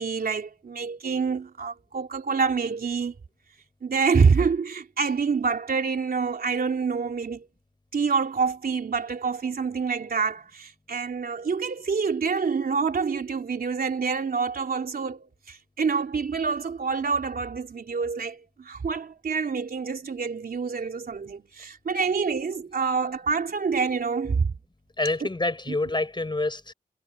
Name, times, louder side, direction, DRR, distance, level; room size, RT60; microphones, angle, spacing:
voice 1, 0.0-3.1 3.8-7.5 7.9-24.5 25.2-25.3 25.7-25.8, right 5 dB, 85° right, 3.3 m, -27 dB
voice 2, 25.0-26.7, left 2 dB, 30° left, 4.3 m, -27 dB
cardioid pair, 55°, 15 cm